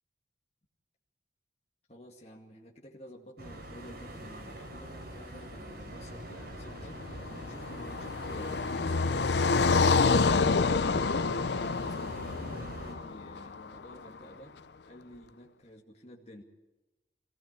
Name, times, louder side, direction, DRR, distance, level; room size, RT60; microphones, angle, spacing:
voice 1, 1.9-10.7 11.1-14.6 14.9-16.4, equal, 35° left, 0 dB, 2.2 m, -51 dB
sound 1, 3.4-12.9, right 1 dB, 55° right, 4.8 m, -44 dB
Car passing by, 6.7-13.9, left 4 dB, 65° left, 0.6 m, -28 dB
23.5 x 16.5 x 8.4 m, 1.1 s
head